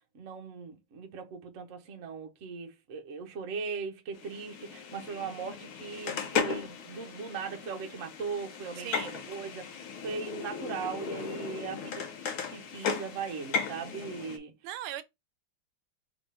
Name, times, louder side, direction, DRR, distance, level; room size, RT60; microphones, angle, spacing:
voice 1, 0.1-14.5, right 5 dB, 50° right, 0.9 m, -39 dB
sound 1, 4.1-14.4, left 6 dB, 80° left, 1.7 m, -36 dB
voice 2, 8.8-9.1 13.9-14.1 14.6-15.0, right 11 dB, 85° right, 1.5 m, -38 dB
3.5 x 3.4 x 4.1 m
omnidirectional pair, 2.4 m